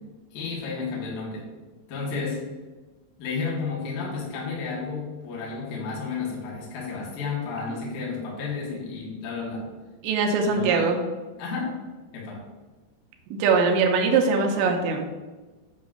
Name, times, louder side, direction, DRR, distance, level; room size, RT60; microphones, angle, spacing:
voice 1, 0.3-1.5 1.9-2.4 3.2-9.7 10.4-11.0 11.4-11.8 12.1-12.4, left 4 dB, 60° left, -4 dB, 2.9 m, -32 dB
voice 2, 10.0-11.0 13.3-15.1, right 4 dB, 75° right, 3 dB, 2.8 m, -22 dB
8.7 x 3.1 x 6.4 m, 1.2 s
omnidirectional pair, 5.6 m